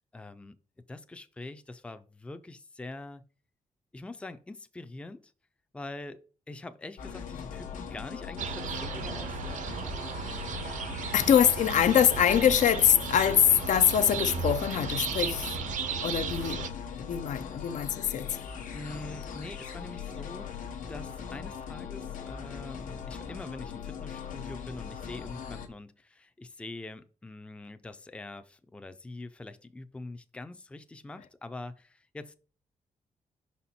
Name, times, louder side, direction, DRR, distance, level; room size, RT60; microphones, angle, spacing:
voice 1, 0.1-0.5 0.9-3.2 3.9-5.3 5.7-6.2 6.5-9.7 17.6-17.7 18.7-32.3, left 2 dB, 10° left, 0.4 m, -44 dB
sound 1, 7.0-25.7, left 7 dB, 85° left, 0.9 m, -40 dB
sound 2, 8.4-16.7, right 7 dB, 70° right, 0.6 m, -35 dB
voice 2, 11.1-15.6 16.0-16.7 17.0-18.4, left 9 dB, 70° left, 0.5 m, -24 dB
5.9 x 4.2 x 4.2 m
wide cardioid pair, 150°, 13 cm